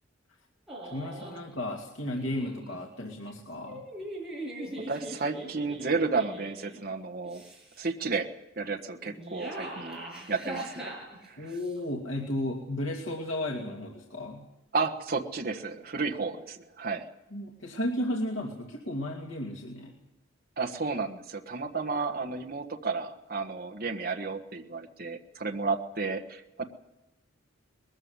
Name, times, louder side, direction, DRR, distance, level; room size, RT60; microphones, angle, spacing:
sound 1, 0.7-1.4 2.1-2.8 3.6-6.8 7.3-7.9 9.0-11.7, right 1 dB, 5° right, 6.8 m, -41 dB
voice 1, 0.9-3.8 11.4-14.5 17.3-20.0, left 1 dB, 85° left, 0 dB, 2.6 m, -34 dB
voice 2, 4.9-7.4 7.8-8.3 8.6-10.0 10.3-10.9 11.2-11.4 14.7-17.1 20.6-26.6, right 4 dB, 50° right, 4 dB, 1.5 m, -32 dB
21.0 x 14.5 x 9.7 m, 0.97 s
head